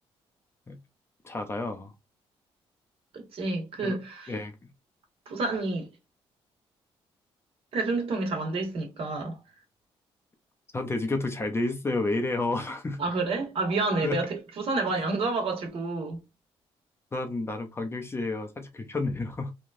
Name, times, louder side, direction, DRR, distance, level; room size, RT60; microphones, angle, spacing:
voice 1, 1.2-1.9 3.8-4.0 4.3-4.5 10.7-13.0 14.0-14.2 17.1-19.5, left 2 dB, 25° left, 0.7 m, -30 dB
voice 2, 3.1-4.3 5.3-5.9 7.7-9.4 13.0-16.2, right 3 dB, 60° right, 1.4 m, -29 dB
3.2 x 2.4 x 2.5 m
cardioid pair, 95°, 11 cm